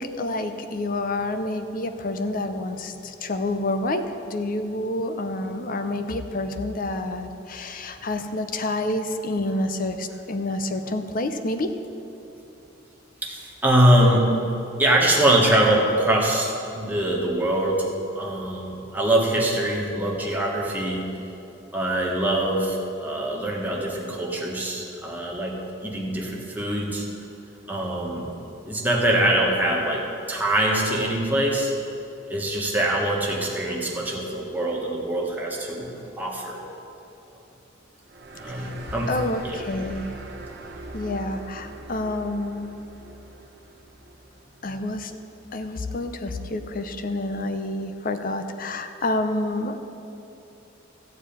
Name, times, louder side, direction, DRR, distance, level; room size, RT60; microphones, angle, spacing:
voice 1, 0.0-11.7 38.5-38.7 39.1-40.1 40.9-42.8 44.6-45.1 45.5-49.8, left 2 dB, 45° left, 7 dB, 0.7 m, -28 dB
voice 2, 13.2-14.3 14.8-17.9 18.1-21.1 21.7-27.1 27.7-28.3 28.7-31.7 32.3-35.9 36.2-36.6 38.4-39.1 39.4-39.6, right 1 dB, 10° right, -3 dB, 1.6 m, -23 dB
sound 1, 38.1-45.2, right 2 dB, 55° right, 1.1 m, -41 dB
13.5 x 4.7 x 8.7 m, 2.9 s
head